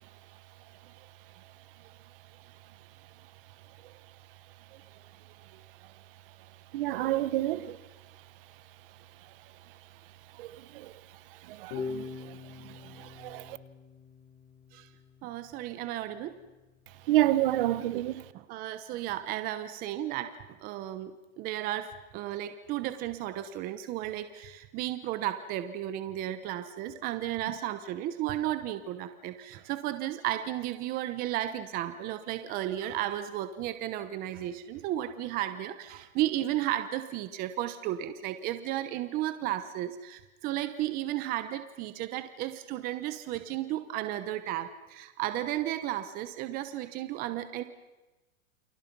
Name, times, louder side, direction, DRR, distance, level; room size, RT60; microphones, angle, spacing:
voice 1, 6.7-7.8 10.4-10.5 10.7-10.9 11.5-12.0 13.0-13.6 17.1-18.2, right 15 dB, 40° right, 1.2 m, -28 dB
sound 1, 11.7-15.1, left 4 dB, 40° left, 7.6 m, -41 dB
voice 2, 15.2-16.3 17.9-18.0 18.3-20.3 20.6-47.6, right 13 dB, 20° right, 1.0 m, -34 dB
29.5 x 27.0 x 5.5 m
supercardioid pair, 160°, 40 cm